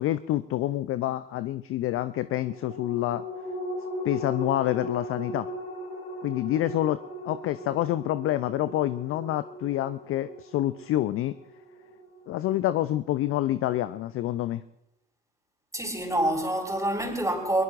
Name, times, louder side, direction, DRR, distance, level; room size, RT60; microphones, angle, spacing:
voice 1, 0.0-3.2 4.0-5.5 6.2-7.0 7.2-11.3 12.3-14.6, left 14 dB, 30° left, 0.5 m, -27 dB
sound 1, 2.2-13.0 13.4-13.5, left 1 dB, 45° left, 5.0 m, -38 dB
voice 2, 15.7-17.6, right 1 dB, 5° right, 4.3 m, -27 dB
22.5 x 22.0 x 2.6 m
figure-of-eight pair, 75°, 50 cm